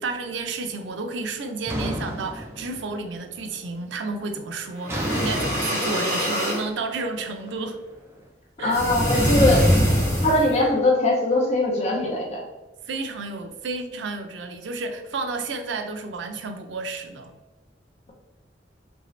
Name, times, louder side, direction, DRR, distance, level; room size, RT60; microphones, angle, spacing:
voice 1, 0.0-7.8 8.6-8.8 12.9-17.3, right 3 dB, 85° right, 5 dB, 0.4 m, -31 dB
sound 1, 1.7-3.2 3.5-4.0 4.9-7.9, equal, 15° right, 0.5 m, -32 dB
sound 2, 4.8-6.6 8.7-10.6, equal, 20° left, 1.0 m, -23 dB
voice 2, 8.6-9.6 10.2-12.4, left 2 dB, 35° left, -2 dB, 0.5 m, -21 dB
2.8 x 2.7 x 3.1 m, 1.1 s
head